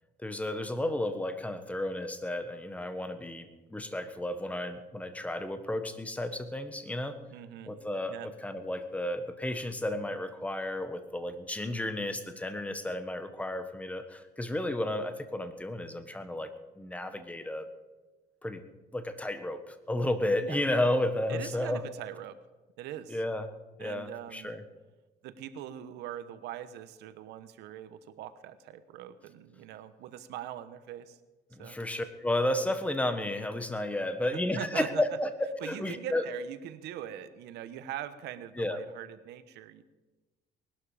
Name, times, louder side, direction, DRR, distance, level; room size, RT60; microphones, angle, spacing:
voice 1, 0.2-7.2 7.6-17.6 18.4-18.6 18.9-21.8 23.1-23.5 23.8-24.6 31.5-35.3 35.6-36.2 38.6-38.8, left 1 dB, 10° left, 9 dB, 1.4 m, -32 dB
voice 2, 7.3-7.7 8.1-8.3 20.4-20.6 21.3-22.4 22.8-23.2 23.8-24.5 25.2-31.2 31.6-31.8 34.5-35.0 35.6-39.8, right 11 dB, 85° right, 12 dB, 1.1 m, -42 dB
20.0 x 12.0 x 5.0 m, 1.2 s
cardioid pair, 110°, 17 cm